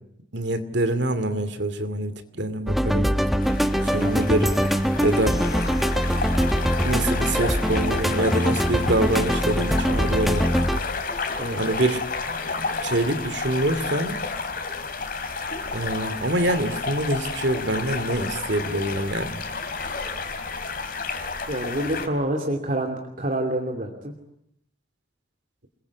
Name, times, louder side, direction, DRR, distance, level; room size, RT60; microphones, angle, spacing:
voice 1, 0.3-3.1 3.8-4.5 5.0-5.4 6.8-10.5 11.6-12.0 12.8-14.2 15.7-19.4, right 1 dB, 65° right, 11 dB, 2.6 m, -25 dB
sound 1, 2.7-10.8, equal, ahead, 1.1 m, -23 dB
sound 2, 3.4-22.1, left 4 dB, 50° left, 3.5 m, -31 dB
voice 2, 21.5-24.1, right 1 dB, 45° right, 2 dB, 2.7 m, -27 dB
29.0 x 21.5 x 8.5 m, 0.75 s
head